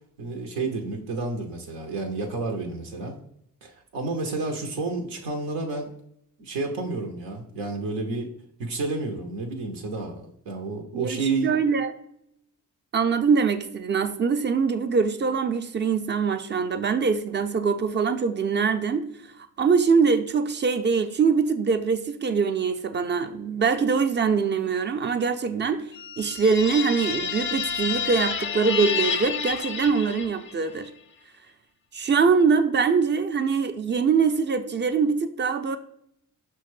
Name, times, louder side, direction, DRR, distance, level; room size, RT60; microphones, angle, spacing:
voice 1, 0.2-3.2 3.6-5.9 6.4-8.3 8.6-11.5, right 3 dB, 85° right, 0.7 m, -30 dB
voice 2, 10.9-11.9 12.9-19.3 19.6-25.9 26.2-30.9 31.9-35.8, right 5 dB, 30° right, 0.4 m, -23 dB
sound 1, 25.9-30.6, left 7 dB, 30° left, 0.4 m, -29 dB
5.5 x 2.2 x 3.1 m
supercardioid pair, 50°, 41 cm